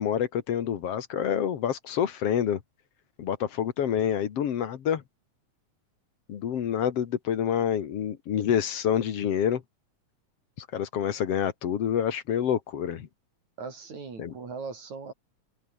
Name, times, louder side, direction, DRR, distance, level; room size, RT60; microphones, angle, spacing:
voice 1, 0.0-2.6 3.2-5.0 6.3-9.6 10.6-13.1 14.2-14.3, left 9 dB, 55° left, 2.4 m, -27 dB
voice 2, 13.6-15.1, right 5 dB, 70° right, 6.0 m, -39 dB
open air
omnidirectional pair, 3.4 m